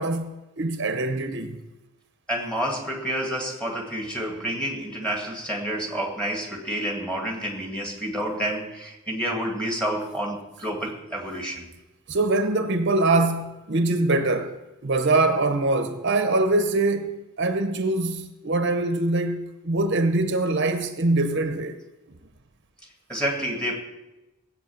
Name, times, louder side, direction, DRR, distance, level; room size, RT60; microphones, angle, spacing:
voice 1, 0.0-1.6 12.1-21.8 22.1-22.2, right 2 dB, 50° right, 0.8 m, -23 dB
voice 2, 2.3-11.7 23.1-23.8, right 1 dB, 5° left, 2.2 m, -29 dB
17.0 x 8.3 x 7.2 m
head